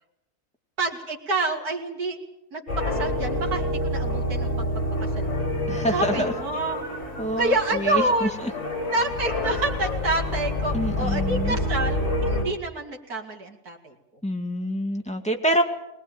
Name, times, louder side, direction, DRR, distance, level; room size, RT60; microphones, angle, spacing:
voice 1, 0.8-2.2 2.5-4.5 5.2-5.5 5.9-6.9 7.4-8.3 8.9-13.9, right 2 dB, 80° right, 1 dB, 3.3 m, -28 dB
sound 1, 2.7-12.4, left 1 dB, 50° left, 5.7 m, -28 dB
voice 2, 5.7-6.3 7.2-8.5 10.7-11.6 14.2-15.6, equal, 5° left, 2 dB, 2.2 m, -26 dB
22.0 x 19.5 x 9.0 m, 0.87 s
omnidirectional pair, 1.6 m